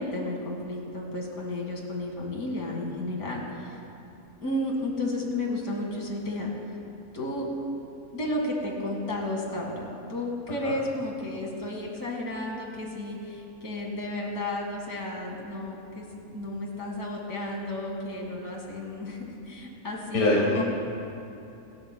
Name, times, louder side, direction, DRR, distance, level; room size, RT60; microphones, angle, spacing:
voice 1, 0.0-3.8 4.4-6.5 7.1-7.5 8.1-20.6, left 1 dB, 90° left, -1 dB, 2.6 m, -33 dB
voice 2, 20.1-20.6, left 2 dB, 70° left, -3 dB, 1.9 m, -23 dB
26.5 x 12.5 x 2.3 m, 2.8 s
omnidirectional pair, 1.5 m